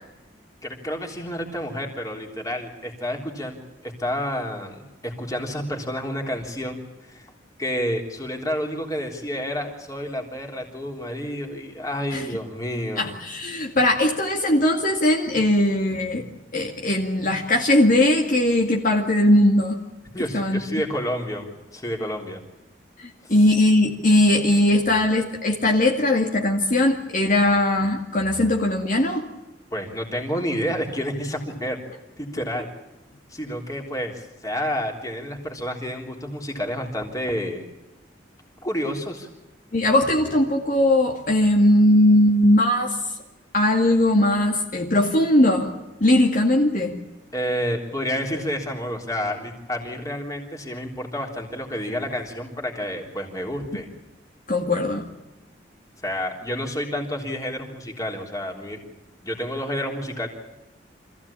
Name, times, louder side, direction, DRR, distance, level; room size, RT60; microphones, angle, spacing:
voice 1, 0.6-3.6 3.8-6.8 7.1-7.3 7.6-13.1 20.1-22.4 23.2-23.3 29.7-31.8 32.2-32.7 33.3-37.7 38.6-39.3 47.3-53.9 56.0-58.8 59.2-60.3, equal, 20° left, 2 dB, 3.6 m, -29 dB
voice 2, 13.0-16.2 16.5-19.8 20.3-20.6 23.0-29.2 39.7-43.0 43.5-45.7 46.0-47.0 53.7-53.8 54.5-55.1, left 1 dB, 50° left, 1 dB, 2.1 m, -19 dB
26.0 x 15.5 x 8.6 m, 1.0 s
head